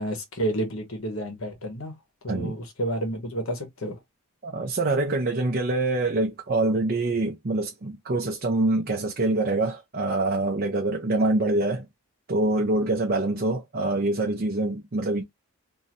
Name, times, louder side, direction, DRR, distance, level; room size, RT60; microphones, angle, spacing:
voice 1, 0.0-1.9 2.2-4.0, right 1 dB, 75° left, 1.1 m, -30 dB
voice 2, 4.4-11.9 12.3-15.2, right 2 dB, 45° right, 0.6 m, -25 dB
3.0 x 2.7 x 2.5 m
head